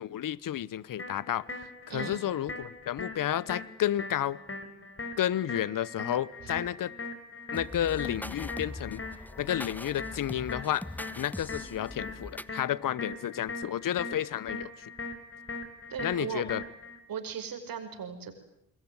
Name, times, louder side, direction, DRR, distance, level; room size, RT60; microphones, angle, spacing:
voice 1, 0.0-1.5 1.9-4.4 5.2-6.9 7.5-9.0 9.4-10.9 11.2-14.9 16.0-16.6, left 11 dB, 60° left, 1.1 m, -31 dB
sound 1, 1.0-17.0, left 3 dB, 35° left, 6.3 m, -41 dB
voice 2, 1.9-2.2 15.9-16.4 17.1-18.4, right 7 dB, 65° right, 5.7 m, -37 dB
sound 2, 7.5-12.6, left 1 dB, 5° left, 1.1 m, -42 dB
28.0 x 22.0 x 9.7 m
supercardioid pair, 50°, 37 cm